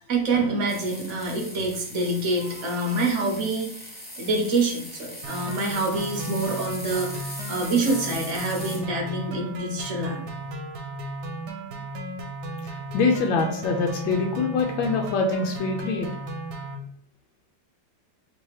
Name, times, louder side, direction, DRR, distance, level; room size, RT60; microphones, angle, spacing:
voice 1, 0.1-3.8 4.2-10.2, right 2 dB, 50° right, 1 dB, 1.0 m, -26 dB
sound 1, 0.7-8.8, equal, 10° left, 0.4 m, -39 dB
sound 2, 5.2-16.8, right 1 dB, 70° right, 1.2 m, -35 dB
voice 2, 12.6-16.1, left 4 dB, 85° left, 1 dB, 1.4 m, -24 dB
3.3 x 2.8 x 4.6 m, 0.65 s
omnidirectional pair, 2.0 m